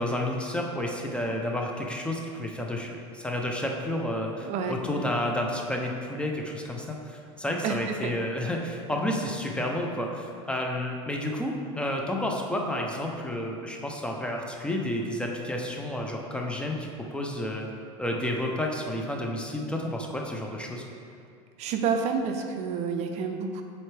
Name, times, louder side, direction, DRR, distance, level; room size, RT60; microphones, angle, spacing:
voice 1, 0.0-17.7 18.0-20.8, left 1 dB, 5° left, 1 dB, 0.6 m, -31 dB
voice 2, 4.4-4.8 7.6-8.1 21.6-23.6, right 5 dB, 45° right, 5 dB, 0.5 m, -29 dB
7.7 x 4.3 x 3.3 m, 2.3 s
supercardioid pair, 125°, 15 cm